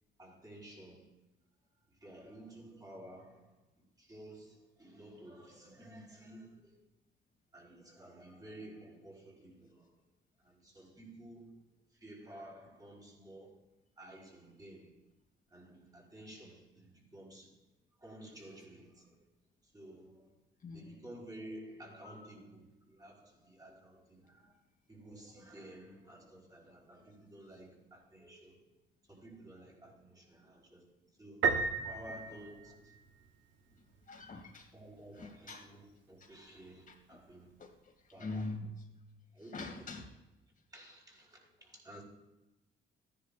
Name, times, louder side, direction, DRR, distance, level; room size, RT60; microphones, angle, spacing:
voice 1, 0.2-1.1 2.0-3.6 4.0-6.8 7.5-9.9 10.4-11.5 12.0-13.6 14.0-14.9 15.5-17.5 18.0-19.1 19.7-20.3 20.7-24.5 24.9-28.7 29.1-30.8 31.2-31.5 31.9-32.9 34.7-37.5 38.1-38.5 39.3-39.9 40.7-42.0, right 1 dB, 20° right, 4.2 m, -53 dB
voice 2, 20.6-21.0 22.0-22.3 34.1-34.7 35.2-35.7 36.9-37.0 37.6-37.7 38.2-38.8 39.5-40.0, left 2 dB, 40° left, 2.4 m, -43 dB
Piano, 31.4-33.3, right 5 dB, 70° right, 1.1 m, -33 dB
14.5 x 10.0 x 2.5 m
cardioid pair, 90°, 20 cm